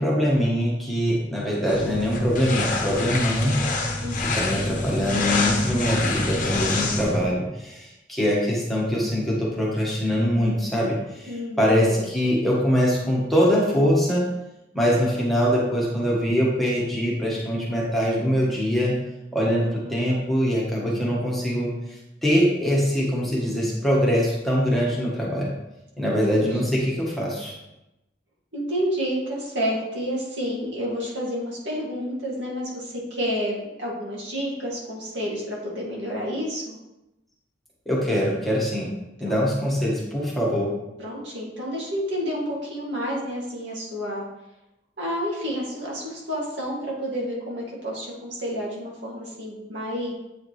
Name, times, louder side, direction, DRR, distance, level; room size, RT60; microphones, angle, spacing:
voice 1, 0.0-3.6 4.3-14.2 14.7-18.9 19.3-21.7 22.2-25.5 26.0-27.5 37.8-38.9 39.2-40.7, equal, ahead, -6 dB, 1.5 m, -23 dB
sound 1, 1.7-7.3, left 2 dB, 45° left, 0.9 m, -26 dB
voice 2, 4.0-4.5 11.3-11.6 11.9-12.1 19.7-20.0 26.3-26.5 28.5-36.8 39.2-39.4 41.0-44.2 45.0-50.1, equal, 80° right, -4 dB, 2.2 m, -30 dB
8.3 x 4.9 x 3.2 m, 0.93 s
head